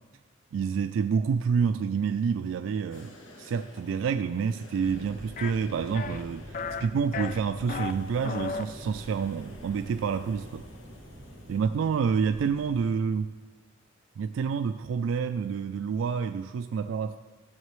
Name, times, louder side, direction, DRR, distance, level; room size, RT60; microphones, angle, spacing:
voice 1, 0.5-10.7 11.5-13.3 14.2-17.2, right 6 dB, 85° right, 9 dB, 0.3 m, -28 dB
sound 1, 2.9-11.6, left 1 dB, 90° left, 1.1 m, -50 dB
sound 2, 4.8-12.9, equal, 35° right, 0.9 m, -46 dB
sound 3, 5.4-5.5 5.9-6.2 6.5-6.9 7.1-7.9 8.2-8.7, left 5 dB, 45° left, 0.4 m, -34 dB
12.0 x 7.5 x 3.1 m, 1.3 s
head